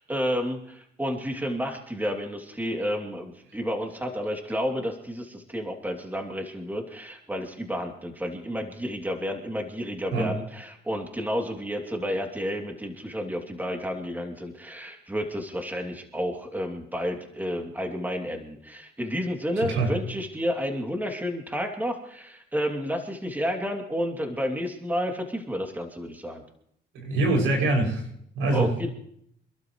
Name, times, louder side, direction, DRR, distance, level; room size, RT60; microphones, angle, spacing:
voice 1, 0.0-26.4 28.5-28.9, equal, 10° right, 2 dB, 2.9 m, -31 dB
voice 2, 19.6-19.9 26.9-28.0 28.4-28.7, right 2 dB, 90° right, 0 dB, 6.9 m, -24 dB
28.5 x 12.0 x 3.2 m, 0.70 s
cardioid pair, 90°, 20 cm